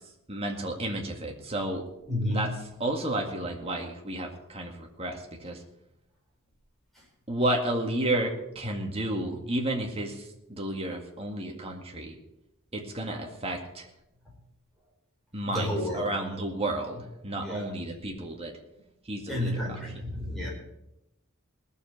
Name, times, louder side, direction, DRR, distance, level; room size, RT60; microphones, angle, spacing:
voice 1, 0.3-1.8 2.3-2.5 2.8-5.6 7.3-10.2 10.5-12.2 12.7-13.9 15.3-18.5 19.1-19.5, right 1 dB, 30° right, 2 dB, 2.0 m, -31 dB
voice 2, 2.1-2.6 6.9-7.1 15.5-16.2 17.4-17.7 19.3-20.5, left 1 dB, ahead, -4 dB, 5.0 m, -31 dB
18.5 x 7.2 x 6.7 m, 0.87 s
head